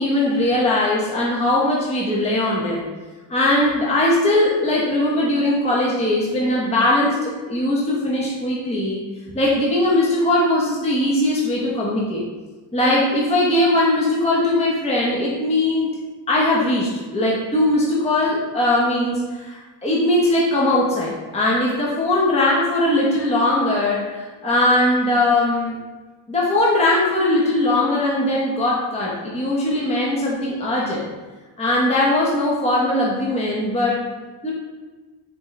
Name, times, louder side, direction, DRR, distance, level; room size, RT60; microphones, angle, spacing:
voice 1, 0.0-2.8 3.3-9.0 9.3-12.2 12.7-16.0 16.3-25.8 26.3-31.1 31.6-34.0 34.4-34.5, left 1 dB, 15° left, -4 dB, 0.6 m, -20 dB
4.0 x 2.1 x 3.8 m, 1.3 s
wide cardioid pair, 115°, 44 cm